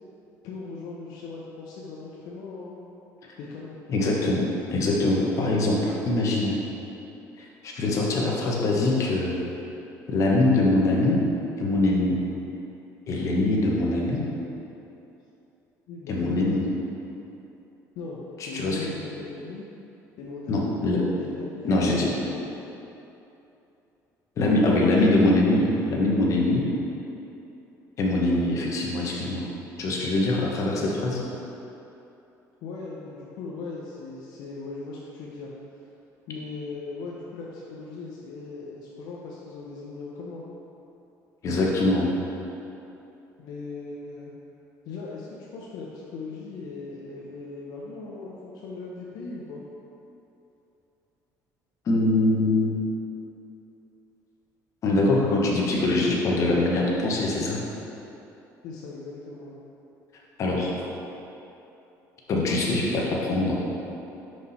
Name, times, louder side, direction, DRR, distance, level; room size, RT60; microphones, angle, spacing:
voice 1, 0.4-2.8 3.4-3.8 15.9-16.5 17.9-19.6 20.2-20.8 21.2-21.7 22.0-22.7 30.8-31.5 32.6-35.5 36.3-40.4 43.4-44.3 44.8-49.6 58.6-59.5, left 3 dB, 80° left, -4 dB, 0.7 m, -38 dB
voice 2, 3.9-6.6 7.4-9.4 10.1-11.2 11.6-12.2 13.1-14.2 16.1-16.6 18.4-18.8 20.5-21.0 21.6-22.1 24.4-26.6 28.0-29.4 29.8-31.2 41.4-42.1 51.8-52.9 54.8-57.6 60.4-60.9 62.3-63.6, left 2 dB, 50° left, -3 dB, 1.1 m, -23 dB
5.5 x 4.8 x 4.1 m, 2.9 s
cardioid pair, 115°, 7 cm